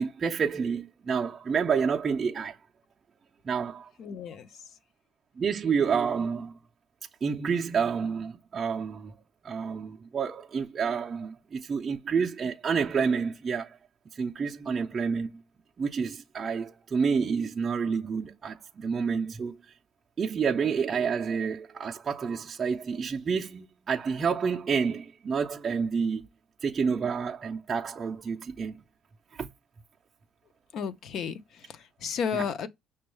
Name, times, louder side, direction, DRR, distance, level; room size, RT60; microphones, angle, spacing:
voice 1, 0.0-2.6 3.4-3.9 5.4-6.5 7.2-9.1 9.4-13.8 14.2-15.3 15.8-19.6 20.2-26.3 26.6-28.8 29.3-29.5 32.3-32.4, right 6 dB, 25° right, 0.4 m, -29 dB
voice 2, 4.0-4.6 30.7-32.7, left 6 dB, 45° left, 0.5 m, -33 dB
6.1 x 2.2 x 3.1 m
cardioid pair, 150°, 0 cm